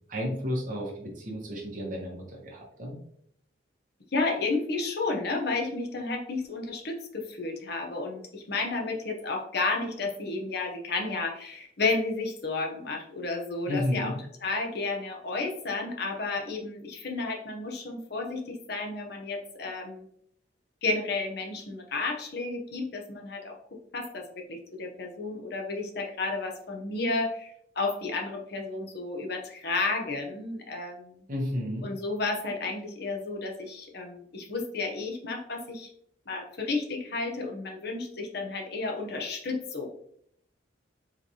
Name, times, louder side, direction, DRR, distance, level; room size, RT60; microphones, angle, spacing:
voice 1, 0.1-2.9 13.7-14.2 31.3-31.9, left 1 dB, 45° right, -3 dB, 1.4 m, -32 dB
voice 2, 4.1-14.1 14.4-20.0 20.8-23.6 23.9-31.2 31.8-35.9 36.3-39.9, left 3 dB, 60° left, 2 dB, 0.9 m, -32 dB
4.9 x 3.3 x 2.8 m, 0.67 s
head